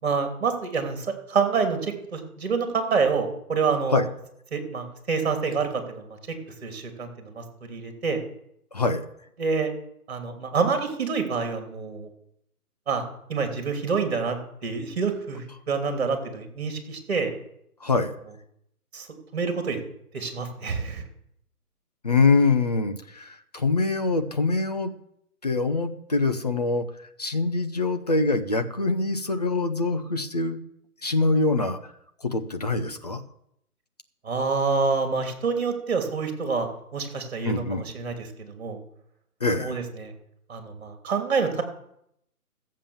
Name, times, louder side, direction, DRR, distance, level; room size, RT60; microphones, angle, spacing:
voice 1, 0.0-4.0 4.5-6.3 6.6-8.2 9.4-9.7 10.1-12.1 12.9-17.3 18.9-19.1 19.3-19.8 20.1-21.0 34.2-36.7 36.9-38.8 39.6-40.1 40.5-41.6, right 5 dB, 45° right, 6 dB, 3.0 m, -27 dB
voice 2, 8.7-9.0 17.8-18.1 22.0-24.9 25.4-30.6 31.0-31.9 32.2-33.2 37.4-37.9 39.4-39.8, left 3 dB, 25° left, 7 dB, 0.7 m, -24 dB
14.5 x 7.5 x 7.1 m, 0.76 s
figure-of-eight pair, 155°, 46 cm